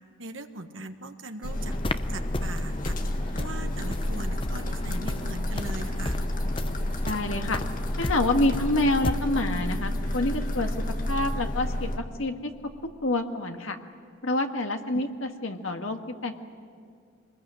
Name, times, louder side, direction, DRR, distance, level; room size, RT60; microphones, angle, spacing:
voice 1, 0.2-1.7 2.1-3.0 3.3-6.2 14.9-15.0, right 2 dB, 75° right, 6 dB, 1.6 m, -40 dB
sound 1, 1.4-12.0, left 1 dB, 40° left, 1.8 m, -30 dB
sound 2, 1.6-9.1, left 2 dB, 25° left, 0.6 m, -36 dB
voice 2, 7.0-7.6 8.0-10.7 11.1-12.5 13.0-13.8 14.2-16.4, left 2 dB, 85° left, 5 dB, 1.7 m, -27 dB
24.5 x 20.5 x 9.1 m, 2.2 s
head